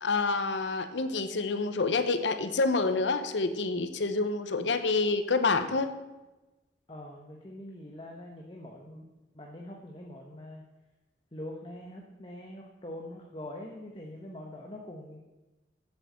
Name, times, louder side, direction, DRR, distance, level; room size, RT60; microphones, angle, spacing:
voice 1, 0.0-5.9, left 3 dB, 85° left, 10 dB, 0.8 m, -28 dB
voice 2, 6.9-9.1 9.3-10.6 11.3-15.2, left 1 dB, 30° left, 0 dB, 1.1 m, -43 dB
8.1 x 7.8 x 8.0 m, 1.1 s
head